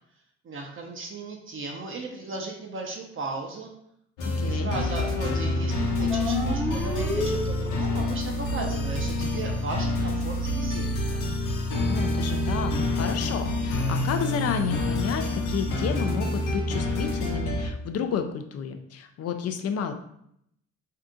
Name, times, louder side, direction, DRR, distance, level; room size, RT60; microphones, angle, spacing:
voice 1, 0.4-3.7 4.4-11.2, right 3 dB, 45° right, 1 dB, 0.6 m, -36 dB
sound 1, 4.2-17.7, left 1 dB, 85° left, 0.8 m, -27 dB
voice 2, 4.2-4.7 11.8-19.9, left 7 dB, 55° left, 7 dB, 0.5 m, -31 dB
sound 2, 6.1-8.1, left 1 dB, 5° left, 0.7 m, -30 dB
2.7 x 2.4 x 3.6 m, 0.73 s
cardioid pair, 90°, 30 cm